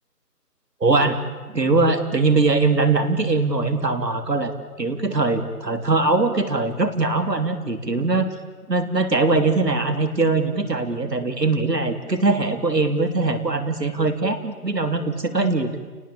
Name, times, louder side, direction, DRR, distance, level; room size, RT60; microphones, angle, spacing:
voice 1, 0.8-1.2 1.5-8.3 8.7-15.8, right 3 dB, 85° right, 8 dB, 3.6 m, -21 dB
29.5 x 19.0 x 8.7 m, 1.4 s
figure-of-eight pair, 170°, 48 cm